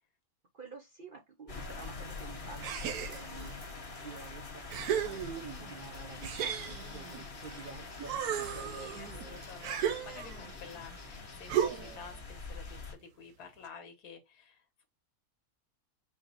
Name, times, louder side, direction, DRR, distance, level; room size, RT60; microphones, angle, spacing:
voice 1, 0.5-9.4 10.2-10.8, right 4 dB, 50° right, 0.6 m, -50 dB
sound 1, 1.5-12.9, left 3 dB, 30° left, 0.7 m, -45 dB
sound 2, 2.6-3.5 4.1-4.2 4.7-5.7 6.2-7.7 8.0-10.5 11.5-12.1, right 9 dB, 80° right, 1.2 m, -35 dB
sound 3, 5.1-12.0, left 4 dB, 65° left, 1.5 m, -56 dB
voice 2, 8.4-14.9, left 6 dB, 85° left, 1.6 m, -51 dB
5.0 x 2.0 x 3.9 m
omnidirectional pair, 1.6 m